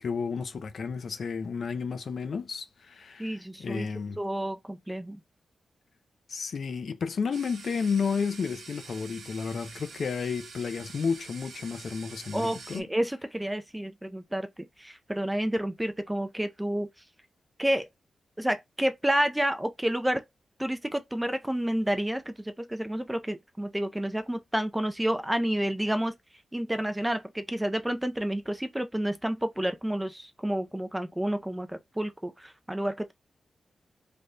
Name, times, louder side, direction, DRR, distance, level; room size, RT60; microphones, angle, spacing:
voice 1, 0.0-4.2 6.3-12.9, left 5 dB, 55° left, 0.5 m, -32 dB
voice 2, 3.2-3.9 4.2-5.2 12.3-14.5 14.8-16.9 17.6-17.9 18.4-20.2 20.6-26.1 26.5-33.1, right 1 dB, 5° right, 0.3 m, -30 dB
sound 1, 7.3-12.8, right 4 dB, 75° right, 0.8 m, -46 dB
3.4 x 2.2 x 3.8 m
wide cardioid pair, 160°, 0 cm